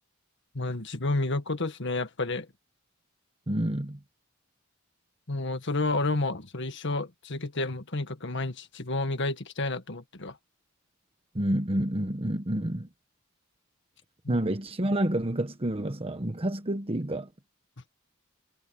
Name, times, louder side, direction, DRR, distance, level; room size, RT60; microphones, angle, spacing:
voice 1, 0.5-2.5 5.3-10.3 14.2-14.4, left 2 dB, 60° left, 1.7 m, -30 dB
voice 2, 3.5-4.0 11.3-12.9 14.3-17.3, right 1 dB, 30° right, 1.2 m, -29 dB
head